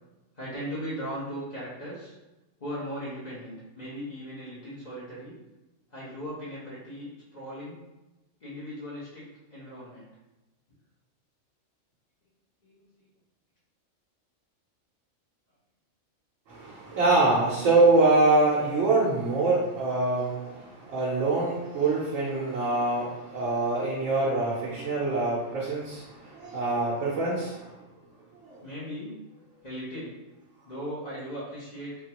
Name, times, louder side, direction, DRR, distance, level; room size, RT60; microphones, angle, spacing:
voice 1, 0.3-2.1 2.6-5.3 5.9-7.8 8.4-9.2 9.5-10.1 12.6-12.9 16.6-17.0 28.6-29.1 29.6-30.2 30.6-32.0, equal, 35° left, -9 dB, 1.1 m, -38 dB
voice 2, 16.5-27.7, right 2 dB, 75° right, -5 dB, 1.0 m, -24 dB
3.5 x 2.3 x 2.8 m, 1.0 s
omnidirectional pair, 1.3 m